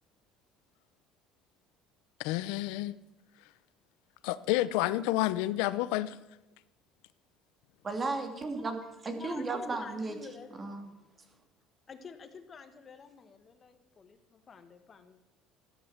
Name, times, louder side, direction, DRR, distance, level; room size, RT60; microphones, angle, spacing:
voice 1, 2.2-2.9 4.2-6.2, left 16 dB, 90° left, 0.7 m, -29 dB
voice 2, 7.8-10.2 10.6-10.9, right 3 dB, 25° right, 2.8 m, -34 dB
voice 3, 9.1-10.8 11.9-15.3, left 5 dB, 30° left, 1.8 m, -49 dB
14.0 x 12.5 x 7.3 m
cardioid pair, 120°, 0 cm